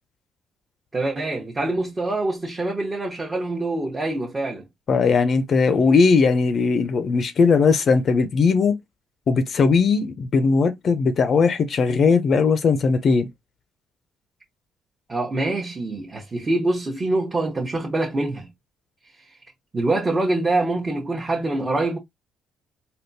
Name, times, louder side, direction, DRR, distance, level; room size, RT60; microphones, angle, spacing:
voice 1, 0.9-4.6 15.1-18.5 19.7-22.0, right 2 dB, 25° right, 0.9 m, -25 dB
voice 2, 4.9-8.8 9.3-13.3, left 4 dB, 55° left, 0.5 m, -19 dB
3.6 x 2.2 x 2.6 m
supercardioid pair, 70°, 0 cm